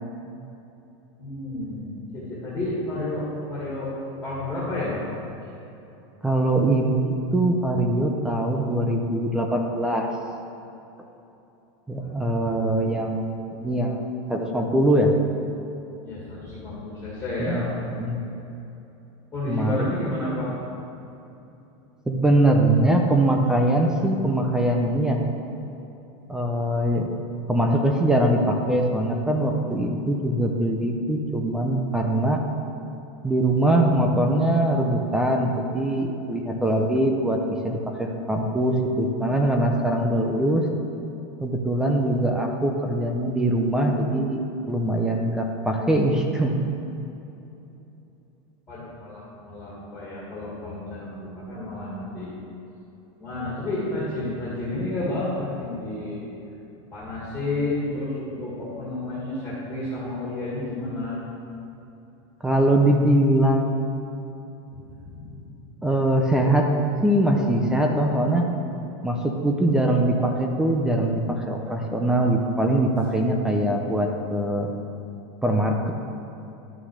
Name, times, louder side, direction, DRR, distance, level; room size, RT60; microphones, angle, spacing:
voice 1, 1.2-3.9 4.2-5.1 5.4-5.5 12.0-12.7 16.0-18.3 19.3-20.5 48.7-52.3 53.2-56.3 56.9-61.2 64.7-65.4, left 2 dB, 15° left, -8 dB, 2.1 m, -31 dB
voice 2, 6.2-10.1 11.9-15.1 17.4-17.6 18.0-18.3 19.5-20.0 22.1-25.2 26.3-27.1 27.5-32.4 33.2-40.6 41.4-46.5 62.4-63.7 65.8-66.7 67.0-68.4 69.0-74.7 75.4-75.9, right 1 dB, 5° right, 2 dB, 0.5 m, -22 dB
11.5 x 6.1 x 6.5 m, 2.9 s
supercardioid pair, 175°, 15 cm